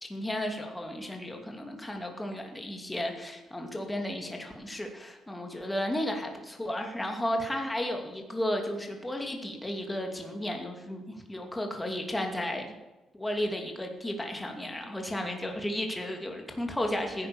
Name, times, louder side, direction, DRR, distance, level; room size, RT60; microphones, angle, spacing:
voice 1, 0.0-12.7 13.1-17.3, left 1 dB, 10° left, 3 dB, 2.6 m, -33 dB
15.5 x 10.0 x 7.1 m, 1.1 s
cardioid pair, 90°, 0 cm